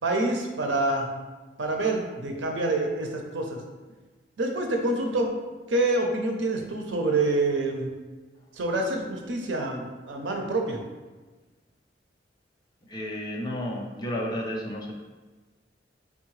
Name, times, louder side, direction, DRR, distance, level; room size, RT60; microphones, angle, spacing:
voice 1, 0.0-1.1 1.6-3.6 4.4-5.3 5.7-8.0 8.5-10.8, right 2 dB, 85° right, 2 dB, 0.6 m, -27 dB
voice 2, 12.9-14.9, equal, 25° left, -1 dB, 0.6 m, -32 dB
4.2 x 3.5 x 3.2 m, 1.3 s
head